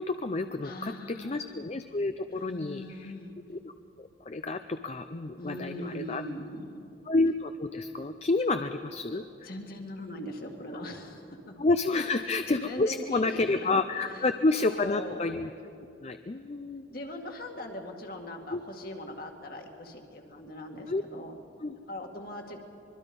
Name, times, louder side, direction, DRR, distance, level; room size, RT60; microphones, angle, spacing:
voice 1, 0.0-3.1 3.5-3.7 4.0-6.2 7.1-9.2 11.6-15.5 16.0-16.8 18.5-18.6 20.9-21.0 21.6-21.7, left 3 dB, 35° left, 9 dB, 0.5 m, -29 dB
voice 2, 0.6-1.6 2.3-3.4 5.4-6.8 9.4-11.6 11.9-12.2 12.6-13.7 14.1-15.2 16.9-21.3 21.9-22.6, left 1 dB, 50° left, 2 dB, 2.2 m, -41 dB
24.5 x 22.5 x 5.4 m, 2.7 s
head